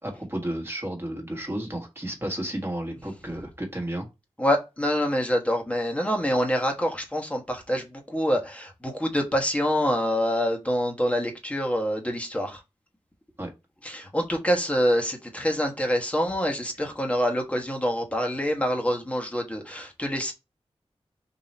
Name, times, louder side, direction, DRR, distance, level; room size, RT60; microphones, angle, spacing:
voice 1, 0.0-4.0 13.4-13.5, right 1 dB, 20° right, 1.5 m, -32 dB
voice 2, 4.4-12.6 13.8-20.3, equal, 10° left, 1.2 m, -26 dB
4.0 x 2.9 x 4.3 m
wide cardioid pair, 80°, 11 cm